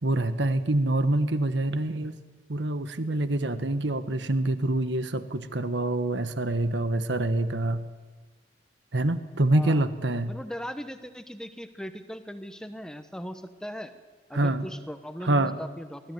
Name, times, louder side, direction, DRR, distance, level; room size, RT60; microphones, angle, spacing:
voice 1, 0.0-2.1 2.5-7.8 8.9-10.3 14.3-14.6 15.2-15.5, right 2 dB, 70° right, 10 dB, 1.2 m, -26 dB
voice 2, 10.3-13.9 14.3-16.1, equal, 5° left, 9 dB, 1.0 m, -38 dB
20.5 x 14.0 x 9.3 m, 1.4 s
head